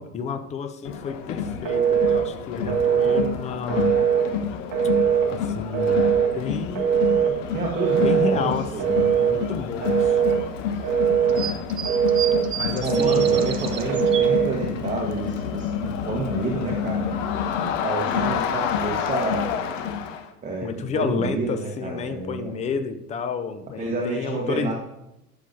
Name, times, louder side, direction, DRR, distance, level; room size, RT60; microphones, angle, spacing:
voice 1, 0.0-3.9 5.2-7.3 8.0-10.2 12.6-13.4 20.6-24.7, left 5 dB, 15° left, 9 dB, 0.5 m, -31 dB
Crowd, 0.8-20.3, left 7 dB, 55° left, 1.0 m, -29 dB
Telephone, 1.7-2.2 2.7-3.2 3.7-4.3 4.7-5.3 5.7-6.3 6.8-7.3 7.8-8.3 8.8-9.4 9.8-10.4 10.8-11.4 11.8-12.4 12.9-13.4 13.9-14.5, right 8 dB, 40° right, 2.0 m, -20 dB
voice 2, 2.5-3.1 7.3-9.5 12.8-17.2 17.6-19.5 20.4-20.7 20.9-22.5 23.8-24.7, right 3 dB, 15° right, -2 dB, 1.3 m, -30 dB
sound 1, 7.9-8.2 8.7-8.8 9.8-9.9 11.3-14.5 14.9-15.0 15.3-15.4 15.9-16.1 16.7-16.8 17.1-17.4 17.8-17.9, right 7 dB, 90° right, 0.7 m, -33 dB
12.5 x 6.7 x 2.7 m, 0.89 s
figure-of-eight pair, 90°, 46 cm